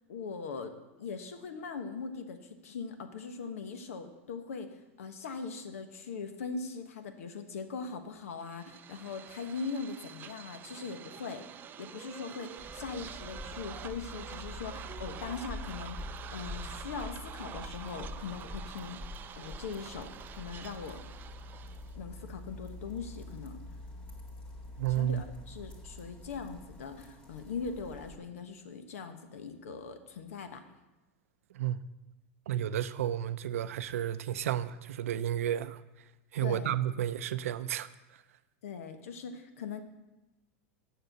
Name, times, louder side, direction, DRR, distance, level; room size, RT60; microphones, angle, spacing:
voice 1, 0.1-11.4 11.8-19.0 19.3-21.0 21.9-23.6 24.9-30.6 36.4-36.8 38.6-39.8, left 5 dB, 90° left, 1.1 m, -41 dB
sound 1, 8.4-22.0, right 9 dB, 25° right, 0.4 m, -47 dB
tadpoles outisde unfiltered, 12.6-28.2, left 2 dB, 15° left, 2.0 m, -46 dB
voice 2, 24.8-25.2 31.5-31.8 32.5-35.8 36.3-37.9, right 11 dB, 85° right, 0.5 m, -32 dB
6.8 x 6.6 x 7.8 m
supercardioid pair, 130°, 7 cm